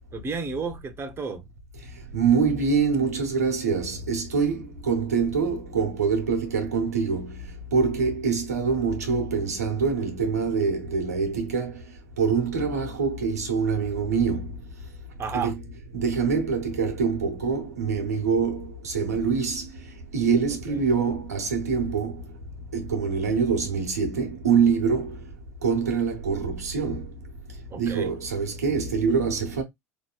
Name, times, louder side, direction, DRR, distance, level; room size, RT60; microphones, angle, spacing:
voice 1, 0.1-1.5 15.2-15.5 27.7-28.1, right 5 dB, 30° right, 0.7 m, -32 dB
voice 2, 2.1-7.4 7.7-11.8 12.2-14.5 15.3-15.6 15.9-19.6 20.1-22.2 22.7-25.2 25.6-27.0 27.8-29.6, right 5 dB, 85° right, 0.9 m, -25 dB
3.6 x 2.7 x 2.3 m
hypercardioid pair, 75°, 8 cm